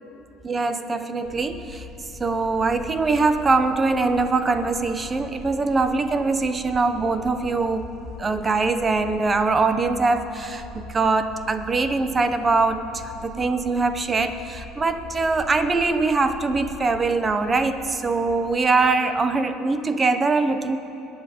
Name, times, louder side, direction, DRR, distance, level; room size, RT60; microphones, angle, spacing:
voice 1, 0.4-1.9 2.2-7.9 8.2-20.8, right 3 dB, 25° right, 9 dB, 0.8 m, -22 dB
sound 1, 1.2-19.3, left 3 dB, 40° left, 2.3 m, -43 dB
21.5 x 8.9 x 5.2 m, 2.9 s
supercardioid pair, 105°, 0 cm